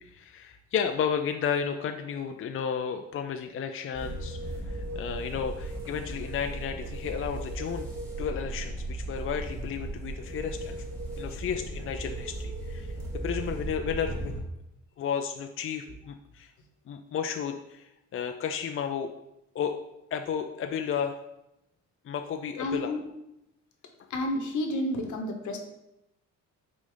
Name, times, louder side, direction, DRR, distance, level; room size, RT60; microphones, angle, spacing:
voice 1, 0.0-4.4 4.7-7.9 8.2-10.8 11.2-12.9 13.2-14.3 15.0-16.5 16.9-17.8 18.1-19.1 19.5-19.7 20.1-21.2 22.1-23.0, left 7 dB, 45° left, 6 dB, 0.5 m, -32 dB
sound 1, 3.9-14.4, right 2 dB, 10° right, 2.2 m, -36 dB
voice 2, 22.6-23.0 24.1-25.6, left 1 dB, 75° left, 4 dB, 1.2 m, -30 dB
6.2 x 4.0 x 3.9 m, 0.86 s
cardioid pair, 90°, 30 cm